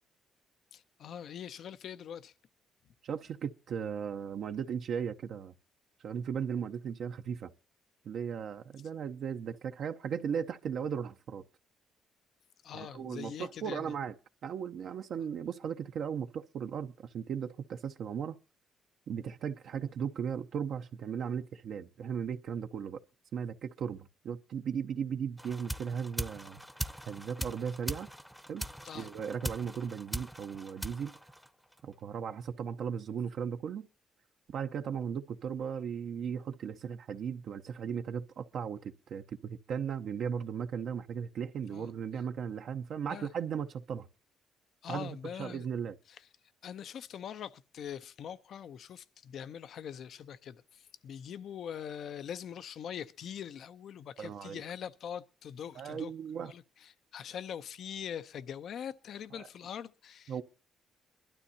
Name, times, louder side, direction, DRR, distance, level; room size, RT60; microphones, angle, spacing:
voice 1, 0.7-2.3 12.6-13.9 28.8-29.1 41.7-41.9 43.1-43.3 44.8-45.7 46.1-46.2 46.6-56.1 56.4-60.4, left 8 dB, 65° left, 0.6 m, -43 dB
voice 2, 3.0-5.5 6.0-7.5 8.0-11.4 12.7-14.1 14.4-18.3 19.1-23.0 23.3-26.6 27.1-28.1 28.5-28.7 28.9-31.1 31.8-33.9 34.5-44.1 44.9-46.0 54.2-54.6 55.7-56.5 59.3-59.5 60.3-60.4, right 7 dB, 70° right, 0.7 m, -37 dB
sound 1, 25.4-31.9, equal, ahead, 0.8 m, -41 dB
23.0 x 12.5 x 2.7 m
cardioid pair, 90°, 0 cm